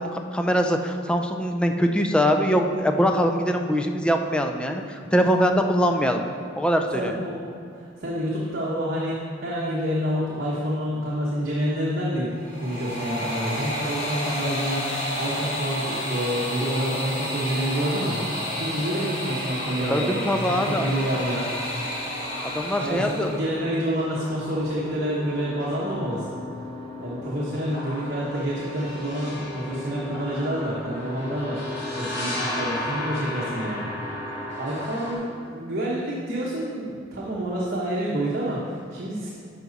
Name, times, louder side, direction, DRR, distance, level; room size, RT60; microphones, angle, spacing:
voice 1, 0.0-6.2 6.6-7.1 19.8-20.9 22.4-23.3, equal, 5° left, 4 dB, 0.5 m, -23 dB
voice 2, 6.9-7.5 7.8-18.2 18.6-21.9 22.8-26.3 27.0-31.6 31.9-33.8 34.6-39.3, equal, 55° right, -6 dB, 1.3 m, -28 dB
sound 1, 12.3-23.4, left 1 dB, 40° left, 2.2 m, -31 dB
sound 2, 17.7-35.1, left 1 dB, 65° left, 2.3 m, -35 dB
10.5 x 6.0 x 4.0 m, 2.3 s
head